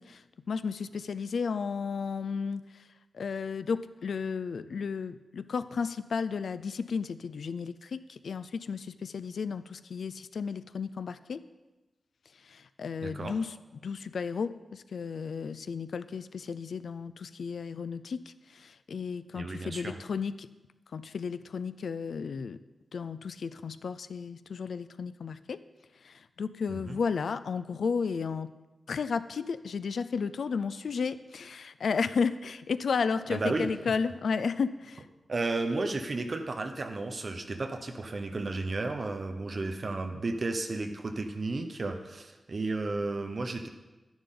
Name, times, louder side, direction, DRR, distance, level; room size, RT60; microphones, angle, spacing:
voice 1, 0.0-2.6 3.1-11.4 12.5-13.5 13.8-20.5 20.9-22.6 22.9-25.6 26.0-28.5 28.9-35.0, left 5 dB, 75° left, 13 dB, 0.4 m, -33 dB
voice 2, 13.0-13.4 19.3-20.0 26.7-27.0 33.3-33.7 35.3-43.7, right 3 dB, 40° right, 6 dB, 0.9 m, -33 dB
11.5 x 10.5 x 3.8 m, 1.1 s
wide cardioid pair, 160°, 0 cm